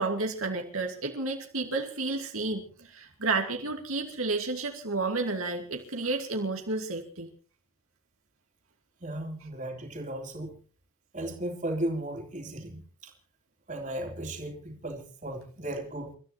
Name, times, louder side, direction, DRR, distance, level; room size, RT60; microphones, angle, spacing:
voice 1, 0.0-7.3, right 3 dB, 70° right, 2 dB, 2.6 m, -31 dB
voice 2, 9.0-10.6 11.1-13.1 13.7-16.2, right 1 dB, 35° right, 2 dB, 3.5 m, -35 dB
30.0 x 14.0 x 2.9 m, 0.40 s
head